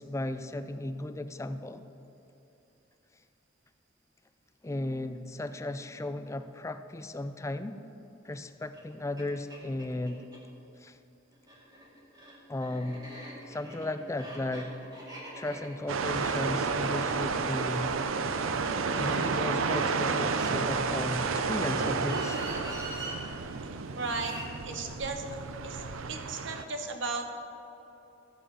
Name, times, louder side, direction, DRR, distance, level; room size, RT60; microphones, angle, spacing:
voice 1, 0.0-1.8 4.6-7.8 8.2-10.2 10.8-11.0 12.5-13.1 13.5-14.7 15.4-18.0 18.9-22.4, left 1 dB, 15° left, 10 dB, 0.4 m, -35 dB
sound 1, 8.7-8.8 9.2-9.3 9.5-10.4 11.3-17.5 18.7-20.9 21.6-23.2 23.9-24.5, right 1 dB, 20° right, 2.1 m, -45 dB
sound 2, 15.9-26.6, right 4 dB, 85° right, 0.6 m, -31 dB
voice 2, 24.0-24.3 24.6-25.4 25.6-25.8 26.1-27.3, right 3 dB, 65° right, 5 dB, 1.1 m, -35 dB
13.5 x 7.6 x 4.9 m, 3.0 s
head